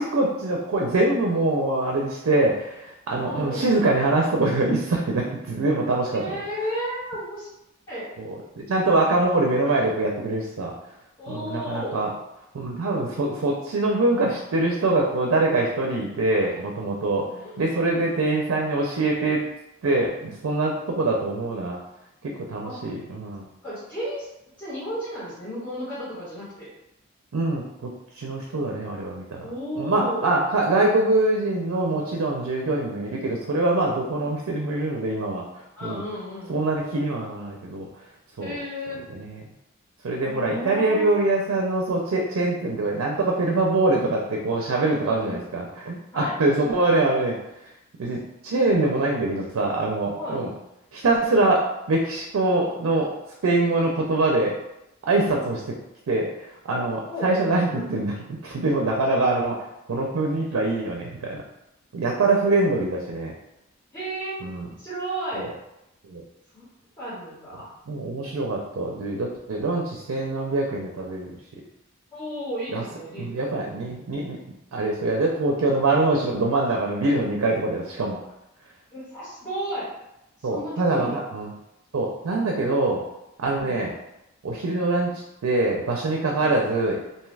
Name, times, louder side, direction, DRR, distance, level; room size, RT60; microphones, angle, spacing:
voice 1, 0.0-6.4 8.2-10.7 11.3-12.1 12.5-17.3 17.6-19.4 19.8-21.8 22.2-23.4 27.3-27.9 28.1-29.5 29.8-35.4 35.8-36.0 36.5-37.9 38.4-38.6 39.1-39.4 40.0-47.4 48.0-50.5 50.9-53.1 53.4-54.5 55.1-55.6 56.1-56.3 56.7-58.1 58.4-59.6 59.9-61.4 61.9-63.3 64.4-64.6 65.3-65.5 66.1-66.2 67.9-71.3 72.7-72.8 73.2-74.4 74.7-78.2 80.4-81.1 81.3-81.5 81.9-83.0 83.4-83.9 84.4-85.1 85.4-87.0, right 2 dB, 80° right, -1 dB, 0.4 m, -24 dB
voice 2, 3.2-3.7 6.1-7.5 7.9-8.1 11.2-12.0 16.5-16.7 17.2-17.6 22.6-22.8 23.6-24.3 24.6-26.7 29.4-30.3 34.2-34.3 35.7-36.7 38.4-39.0 40.2-41.1 44.0-44.2 45.0-45.4 46.1-46.4 50.2-50.4 55.3-55.5 57.0-57.4 57.7-57.8 63.9-64.4 64.8-65.5 66.5-66.7 67.0-67.7 72.1-73.7 78.9-79.8 80.4-81.2 83.6-83.8, equal, 20° left, -12 dB, 1.2 m, -33 dB
2.7 x 2.3 x 3.2 m, 0.88 s
head